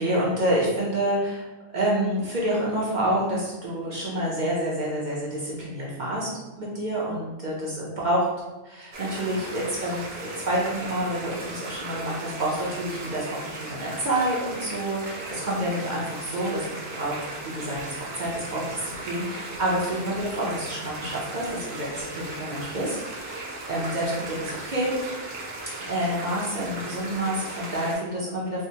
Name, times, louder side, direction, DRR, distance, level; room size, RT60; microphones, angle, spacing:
voice 1, 0.0-1.4 1.7-6.3 6.6-8.3 8.6-16.6 16.9-24.9 25.8-28.7, right 1 dB, 45° right, -5 dB, 0.6 m, -28 dB
sound 1, 8.9-27.9, right 2 dB, 80° right, 1.1 m, -37 dB
4.7 x 2.1 x 2.7 m, 1.1 s
omnidirectional pair, 1.3 m